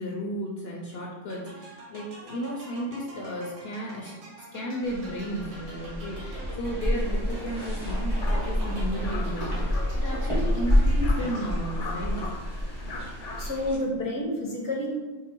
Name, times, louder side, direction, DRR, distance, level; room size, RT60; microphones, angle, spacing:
voice 1, 0.0-4.1 4.4-12.3, equal, 60° left, -2 dB, 0.8 m, -34 dB
sound 1, 1.3-12.0, right 1 dB, 85° right, 1.3 m, -46 dB
sound 2, 4.8-13.7, equal, 35° right, 1.5 m, -28 dB
sound 3, 6.8-13.5, left 3 dB, 85° left, 1.1 m, -41 dB
voice 2, 13.4-15.0, left 1 dB, 20° left, -3 dB, 0.8 m, -29 dB
4.6 x 2.1 x 4.3 m, 1.2 s
omnidirectional pair, 1.3 m